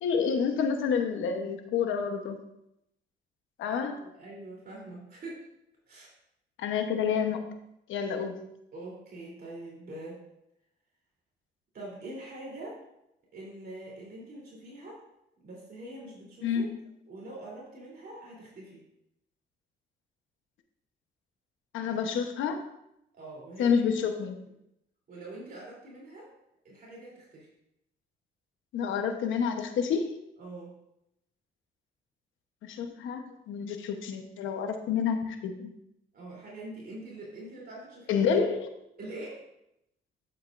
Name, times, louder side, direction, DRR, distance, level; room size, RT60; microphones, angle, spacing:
voice 1, 0.0-2.4 3.6-4.0 6.6-7.6 7.9-8.4 16.4-16.8 21.7-22.6 23.6-24.4 28.7-30.1 32.6-35.7 38.1-38.7, left 6 dB, 80° left, 6 dB, 1.0 m, -29 dB
voice 2, 3.7-5.4 5.9-6.1 8.7-10.2 11.7-12.8 13.3-15.0 15.4-16.7 17.1-18.8 23.1-23.8 25.1-26.3 26.6-27.5 30.4-30.8 36.1-38.2 39.0-39.4, right 2 dB, 50° right, -4 dB, 3.3 m, -44 dB
9.8 x 7.8 x 2.6 m, 0.83 s
cardioid pair, 90°, 20 cm